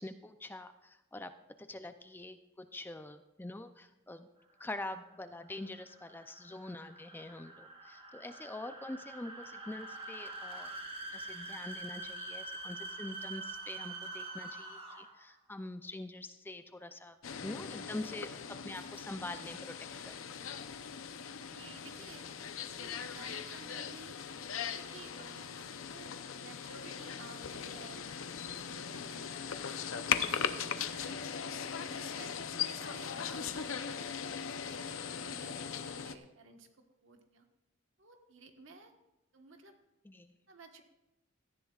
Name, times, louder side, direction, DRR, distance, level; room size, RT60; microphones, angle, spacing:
voice 1, 0.0-4.3 4.6-10.7 11.1-17.2 17.4-19.8 20.0-20.2 40.0-40.3, left 2 dB, 10° left, 9 dB, 0.4 m, -45 dB
sound 1, 4.6-15.3, right 2 dB, 30° right, 1.4 m, -45 dB
sound 2, 17.2-36.1, left 7 dB, 85° left, 0.7 m, -39 dB
voice 2, 21.5-28.3 28.6-29.7 30.0-31.2 31.6-34.2 34.5-36.7 37.0-37.5 38.0-38.9 39.3-39.7 40.5-40.8, right 3 dB, 70° right, 4 dB, 1.3 m, -55 dB
17.5 x 14.0 x 2.4 m, 0.96 s
head